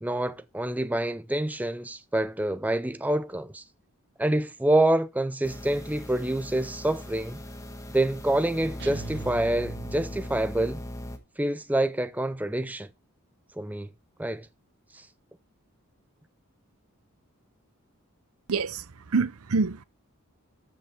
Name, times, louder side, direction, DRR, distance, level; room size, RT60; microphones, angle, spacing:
voice 1, 0.0-3.6 4.2-7.4 7.9-10.8 11.4-12.9 13.6-13.9 14.2-14.5 14.9-15.1, right 1 dB, 5° right, 0.5 m, -27 dB
sound 1, 5.4-11.2, left 1 dB, 15° left, 1.3 m, -39 dB
sound 2, 8.8-10.5, right 5 dB, 50° right, 0.9 m, -41 dB
voice 2, 18.5-18.8 19.1-19.8, right 4 dB, 80° right, 0.7 m, -26 dB
14.0 x 5.7 x 4.4 m
head